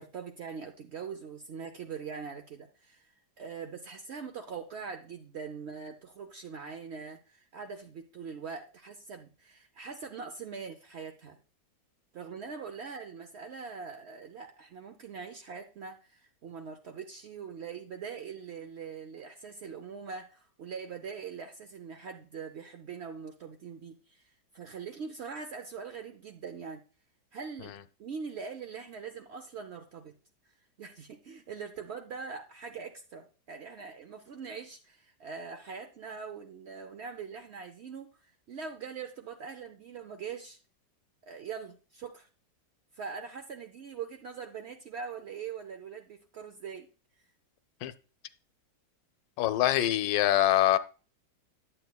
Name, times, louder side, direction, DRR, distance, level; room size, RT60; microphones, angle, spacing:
voice 1, 0.0-11.4 12.1-26.8 27.3-27.7 28.0-30.1 30.8-40.6 41.2-42.3 42.9-46.9, right 6 dB, 80° right, 0.5 m, -42 dB
voice 2, 49.4-50.8, left 13 dB, 85° left, 1.3 m, -24 dB
10.0 x 7.9 x 2.2 m
omnidirectional pair, 1.9 m